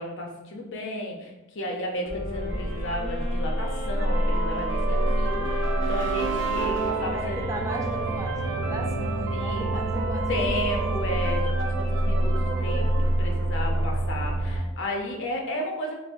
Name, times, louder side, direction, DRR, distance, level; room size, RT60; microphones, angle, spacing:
voice 1, 0.0-7.4 8.0-8.2 9.3-15.9, left 1 dB, 60° left, 1 dB, 0.7 m, -33 dB
sound 1, 2.1-10.0, left 2 dB, 90° left, 1.0 m, -38 dB
sound 2, 2.1-14.6, right 1 dB, 90° right, 1.2 m, -27 dB
sound 3, 2.4-14.2, right 4 dB, 60° right, 0.6 m, -33 dB
voice 2, 7.0-10.9, right 1 dB, 15° right, 1 dB, 0.4 m, -36 dB
5.3 x 2.1 x 2.6 m, 1.1 s
head